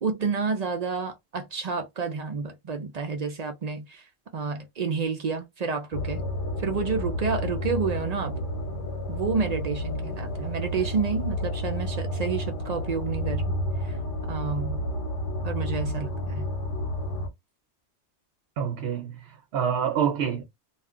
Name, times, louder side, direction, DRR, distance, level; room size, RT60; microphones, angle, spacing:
voice 1, 0.0-4.0 4.3-6.2 6.6-8.4 9.1-13.5 13.8-14.0 14.3-14.8 15.4-16.5, right 5 dB, 50° right, 0.5 m, -30 dB
sound 1, 5.9-17.3, equal, 55° left, 0.9 m, -30 dB
voice 2, 18.6-20.4, right 8 dB, 70° right, 0.8 m, -27 dB
2.4 x 2.2 x 3.6 m
omnidirectional pair, 1.1 m